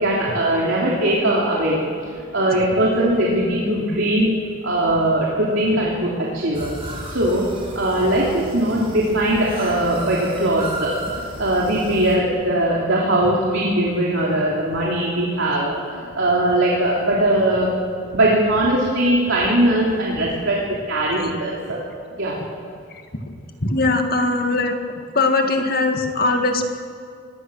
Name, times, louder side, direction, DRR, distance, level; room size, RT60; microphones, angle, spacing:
voice 1, 0.0-1.8 2.3-4.3 4.6-6.7 7.1-7.5 7.7-10.9 11.4-17.8 18.1-21.8 22.2-22.4, right 1 dB, 70° right, -4 dB, 3.2 m, -20 dB
sound 1, 6.5-12.2, right 1 dB, 25° right, 4.3 m, -35 dB
voice 2, 23.6-24.8 25.1-26.6, left 3 dB, 45° left, 4 dB, 2.0 m, -20 dB
23.5 x 18.5 x 6.4 m, 2.4 s
head